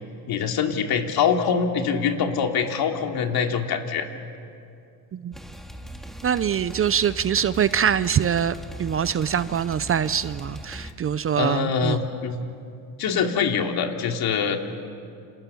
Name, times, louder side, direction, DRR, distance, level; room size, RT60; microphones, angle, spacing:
voice 1, 0.3-4.1 10.8-10.9 11.4-12.4 13.0-14.6, left 6 dB, 60° left, 3 dB, 3.0 m, -24 dB
sound 1, 5.3-10.9, equal, ahead, 2.0 m, -40 dB
voice 2, 6.2-12.0, right 8 dB, 30° right, 15 dB, 0.6 m, -24 dB
29.5 x 28.0 x 7.1 m, 2.5 s
cardioid pair, 120°, 42 cm